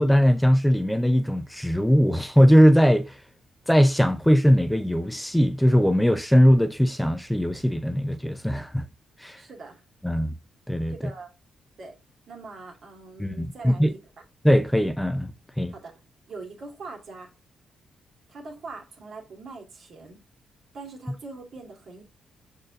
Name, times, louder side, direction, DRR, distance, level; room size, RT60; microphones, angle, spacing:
voice 1, 0.0-3.2 3.7-8.8 9.2-9.4 10.0-10.3 10.7-10.9 13.2-13.9 14.4-15.3 15.6-15.7, equal, 5° left, 0.7 m, -20 dB
voice 2, 9.4-9.8 10.1-10.2 10.9-11.3 11.8-11.9 12.3-14.0 15.7-16.0 16.3-17.3 18.3-20.2 20.7-22.0, right 3 dB, 65° right, 2.2 m, -42 dB
6.3 x 4.3 x 3.7 m
hypercardioid pair, 45°, 0 cm